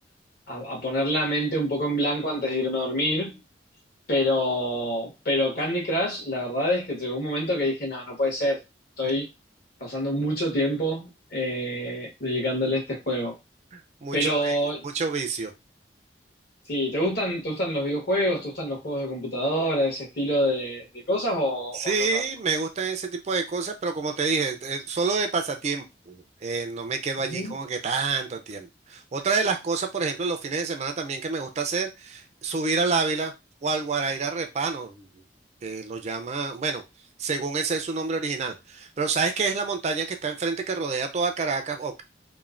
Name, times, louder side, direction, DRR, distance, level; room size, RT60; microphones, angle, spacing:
voice 1, 0.5-3.4 4.1-8.6 9.0-9.3 9.8-13.3 14.1-14.8 16.7-22.2 27.2-27.5, equal, 60° left, 0 dB, 1.3 m, -26 dB
voice 2, 13.7-14.6 14.8-15.5 21.7-33.3 33.6-35.1 35.6-36.8 37.2-42.0, right 4 dB, 40° right, 6 dB, 0.4 m, -28 dB
3.1 x 2.1 x 2.4 m, 0.23 s
head